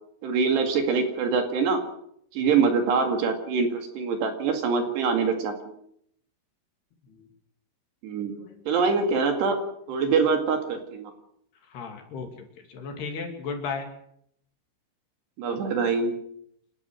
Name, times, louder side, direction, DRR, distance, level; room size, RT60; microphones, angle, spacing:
voice 1, 0.2-1.8 2.3-5.8 8.0-8.4 8.7-9.6 9.9-11.1 15.4-16.1, right 5 dB, 60° right, 5 dB, 3.9 m, -24 dB
voice 2, 11.7-13.9, left 5 dB, 55° left, 4 dB, 4.4 m, -35 dB
29.0 x 12.5 x 7.8 m, 0.71 s
omnidirectional pair, 5.8 m